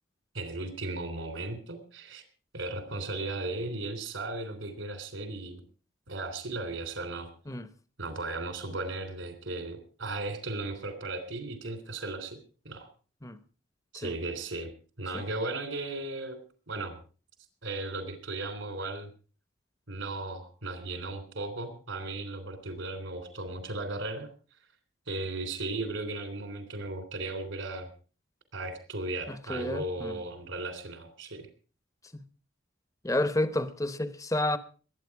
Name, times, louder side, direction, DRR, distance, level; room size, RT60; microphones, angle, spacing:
voice 1, 0.3-2.2 2.5-5.6 6.1-7.3 8.0-12.4 12.6-12.9 13.9-14.7 15.0-16.4 16.7-17.0 17.6-19.1 19.9-24.3 25.1-27.9 28.5-31.5, right 2 dB, 85° right, 3.3 m, -36 dB
voice 2, 29.3-30.2 32.1-32.2 33.0-34.6, left 1 dB, 15° left, 0.9 m, -30 dB
22.0 x 9.1 x 4.7 m
head